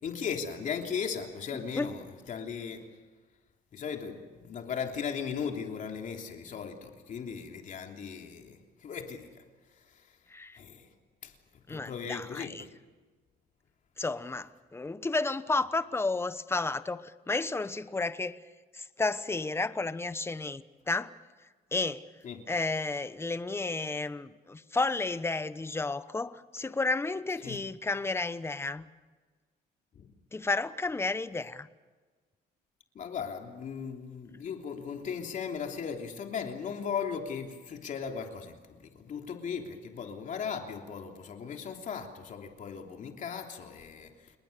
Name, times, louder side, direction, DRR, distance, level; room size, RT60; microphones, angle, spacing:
voice 1, 0.0-2.9 3.7-9.4 9.9-10.0 10.5-10.9 11.2-11.3 11.7-12.7 22.2-22.5 27.4-27.6 29.9-30.1 32.9-44.3, left 6 dB, 50° left, 3.2 m, -37 dB
voice 2, 11.7-12.6 14.0-18.4 18.7-21.1 21.7-22.0 22.5-28.9 30.3-31.7, left 3 dB, 15° left, 1.1 m, -32 dB
29.5 x 19.5 x 6.9 m
cardioid pair, 110°, 17 cm